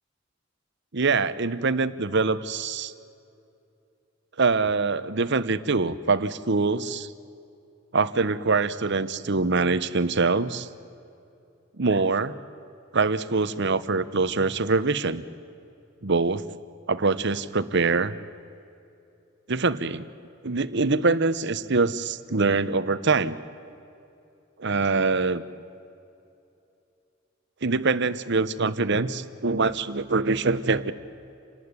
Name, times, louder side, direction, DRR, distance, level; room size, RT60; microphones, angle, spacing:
voice 1, 0.9-2.9 4.4-7.1 7.9-10.7 11.8-12.3 12.9-15.2 16.0-16.4 16.9-18.2 19.5-20.1 20.4-23.4 24.6-25.4 27.6-30.9, right 3 dB, 60° right, 14 dB, 1.1 m, -24 dB
28.5 x 19.0 x 9.8 m, 2.7 s
head